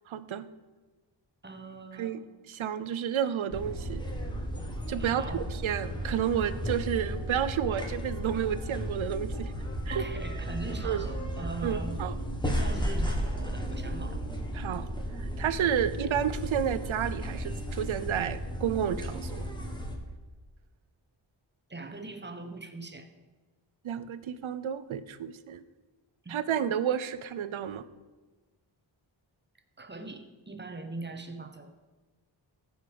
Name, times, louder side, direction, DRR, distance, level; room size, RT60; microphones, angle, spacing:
voice 1, 0.1-0.5 2.0-4.0 4.9-9.5 9.9-10.0 10.8-11.1 11.6-12.2 14.5-14.8 15.2-19.4 23.8-25.6 26.3-27.9, right 9 dB, 80° right, 13 dB, 0.8 m, -31 dB
voice 2, 1.4-2.3 5.0-5.5 9.9-12.0 12.4-14.2 21.7-23.1 26.2-26.4 29.8-31.7, right 3 dB, 20° right, 7 dB, 1.1 m, -41 dB
sound 1, 3.5-20.0, equal, 10° left, 1.6 m, -34 dB
14.0 x 5.4 x 6.8 m, 1.3 s
wide cardioid pair, 90°, 47 cm